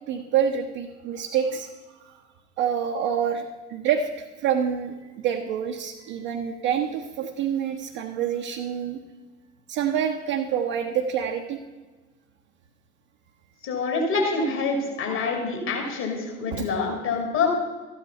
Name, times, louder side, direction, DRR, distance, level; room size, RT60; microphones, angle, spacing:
voice 1, 0.1-1.7 2.0-2.2 2.6-3.4 3.7-9.0 9.7-11.6 16.5-16.6, right 8 dB, 60° right, 2 dB, 1.1 m, -27 dB
voice 2, 13.6-17.5, left 4 dB, 55° left, 1 dB, 2.7 m, -26 dB
13.5 x 8.9 x 5.4 m, 1.2 s
figure-of-eight pair, 60°, 34 cm